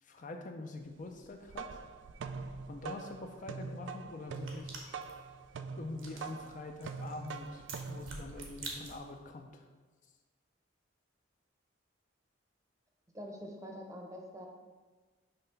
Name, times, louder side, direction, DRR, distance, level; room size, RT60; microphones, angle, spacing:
voice 1, 0.0-1.8 2.7-4.8 5.8-9.7, left 2 dB, 40° left, 4 dB, 0.4 m, -45 dB
sound 1, 1.2-9.0, right 4 dB, 65° right, 0.3 m, -44 dB
sound 2, 4.3-9.3, right 3 dB, 80° right, 1.1 m, -49 dB
voice 2, 13.1-14.5, equal, 15° right, 1 dB, 0.7 m, -45 dB
5.5 x 3.3 x 5.6 m, 1.4 s
head